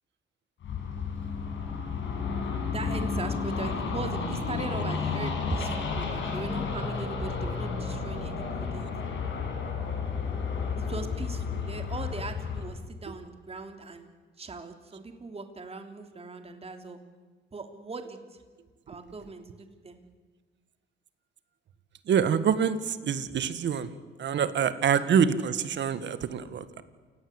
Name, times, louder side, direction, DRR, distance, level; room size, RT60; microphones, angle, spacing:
sound 1, 0.6-12.7, left 5 dB, 70° left, 7.1 m, -32 dB
voice 1, 2.7-8.9 10.8-14.1 14.4-17.0 17.5-18.2 18.9-20.0, right 3 dB, 30° right, 6 dB, 3.1 m, -39 dB
voice 2, 22.1-23.9 24.2-26.8, right 7 dB, 65° right, 12 dB, 1.9 m, -26 dB
28.5 x 18.0 x 8.2 m, 1.5 s
cardioid pair, 90°, 20 cm